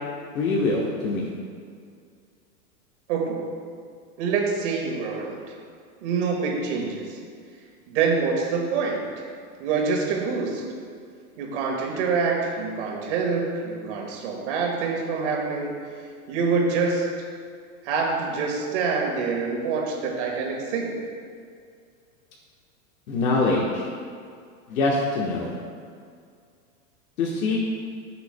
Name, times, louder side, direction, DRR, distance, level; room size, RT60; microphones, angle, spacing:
voice 1, 0.3-1.3 23.1-23.9 24.7-25.5 27.2-27.6, left 3 dB, 80° left, -3 dB, 1.3 m, -24 dB
voice 2, 3.1-3.6 4.2-5.4 6.0-7.2 7.9-9.1 9.6-10.6 11.4-15.7 16.3-17.1 17.8-21.1, right 5 dB, 55° right, 0 dB, 1.8 m, -26 dB
13.0 x 5.9 x 2.2 m, 2.2 s
supercardioid pair, 155°, 43 cm